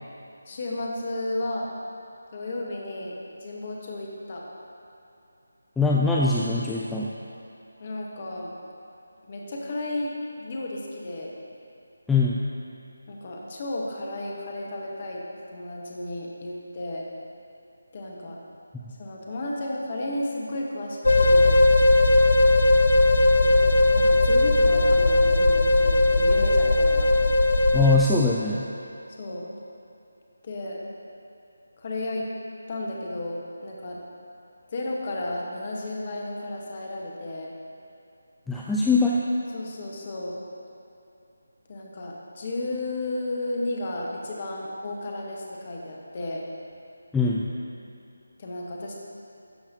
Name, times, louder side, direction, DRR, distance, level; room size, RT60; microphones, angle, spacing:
voice 1, 0.5-1.7 2.3-3.1 3.4-4.4 7.8-8.5 9.3-10.1 10.4-11.3 13.1-15.2 15.5-17.0 17.9-18.4 18.9-21.5 23.4-27.1 29.2-29.5 30.4-30.8 31.8-32.3 32.7-34.0 34.7-37.5 39.5-40.3 41.7-46.4 48.4-48.9, left 1 dB, 35° left, -2 dB, 1.2 m, -33 dB
voice 2, 5.8-7.1 12.1-12.4 27.7-28.7 38.5-39.2 47.1-47.5, left 3 dB, 5° left, -6 dB, 0.3 m, -22 dB
sound 1, 21.0-28.0, left 2 dB, 60° left, 0.6 m, -18 dB
12.0 x 7.0 x 2.7 m, 2.7 s
figure-of-eight pair, 155°, 0 cm